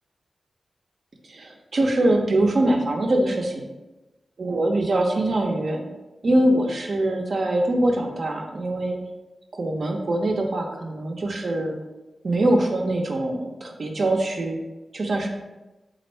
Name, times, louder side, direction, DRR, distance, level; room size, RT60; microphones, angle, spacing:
voice 1, 1.3-3.7 4.4-5.8 6.2-9.0 9.5-11.8 12.2-14.6 14.9-15.3, right 1 dB, 65° right, 2 dB, 0.6 m, -23 dB
3.3 x 2.4 x 4.3 m, 1.1 s
cardioid pair, 45°, 0 cm